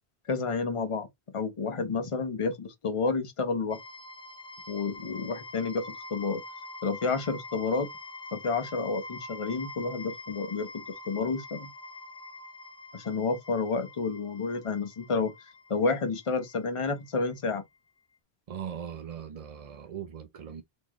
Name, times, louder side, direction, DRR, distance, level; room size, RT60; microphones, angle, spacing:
voice 1, 0.3-1.1 1.3-3.8 4.7-6.4 6.8-7.9 8.3-11.7 12.9-17.6, left 4 dB, 35° left, 0.8 m, -30 dB
sound 1, 3.7-17.6, left 2 dB, 5° left, 0.5 m, -45 dB
voice 2, 18.5-20.6, right 8 dB, 50° right, 0.5 m, -39 dB
4.1 x 2.9 x 3.0 m
omnidirectional pair, 1.1 m